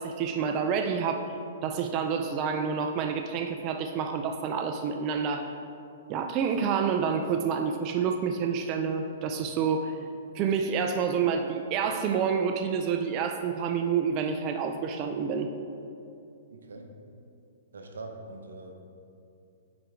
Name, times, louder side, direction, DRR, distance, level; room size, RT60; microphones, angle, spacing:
voice 1, 0.0-1.3 1.6-5.6 6.1-10.0 10.3-15.5, right 6 dB, 35° right, 5 dB, 0.4 m, -28 dB
voice 2, 16.5-16.9 17.7-18.8, right 2 dB, 85° right, 4 dB, 0.8 m, -43 dB
8.8 x 4.4 x 3.5 m, 2.6 s
hypercardioid pair, 135°, 0 cm